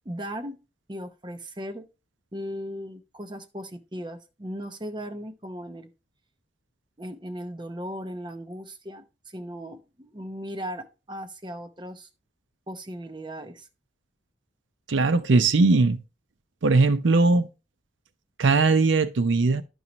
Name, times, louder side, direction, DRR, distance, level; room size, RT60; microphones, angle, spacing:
voice 1, 0.0-0.6 0.9-1.8 2.3-5.9 7.0-12.1 12.7-13.7, equal, 25° right, 0.7 m, -37 dB
voice 2, 14.9-16.0 16.6-17.5 18.4-19.6, right 3 dB, 90° right, 0.6 m, -19 dB
11.0 x 5.4 x 3.0 m
head